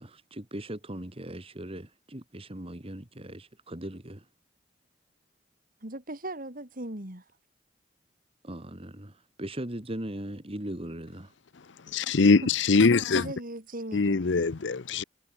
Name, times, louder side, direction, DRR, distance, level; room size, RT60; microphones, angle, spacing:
voice 1, 0.0-4.3 8.4-11.3, right 1 dB, 30° right, 2.4 m, -39 dB
voice 2, 5.8-7.2 12.4-12.5 13.1-14.3, right 1 dB, 45° right, 4.2 m, -38 dB
voice 3, 11.9-13.3 13.9-15.0, left 4 dB, 65° left, 0.7 m, -22 dB
head